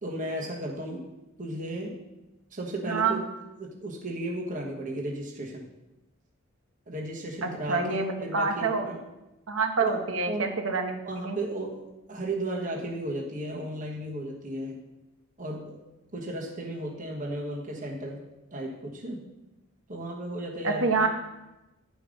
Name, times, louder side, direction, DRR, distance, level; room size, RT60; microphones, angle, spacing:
voice 1, 0.0-1.1 1.4-2.0 2.5-3.2 3.6-5.6 6.9-9.0 9.8-10.0 10.3-10.5 11.0-11.8 12.1-14.8 15.4-15.8 16.1-18.2 18.5-19.2 19.9-21.1, right 1 dB, 40° right, -2 dB, 1.3 m, -34 dB
voice 2, 2.9-3.2 7.4-8.9 9.5-11.4 20.6-21.1, right 4 dB, 65° right, 4 dB, 1.1 m, -27 dB
10.5 x 5.2 x 5.1 m, 0.98 s
head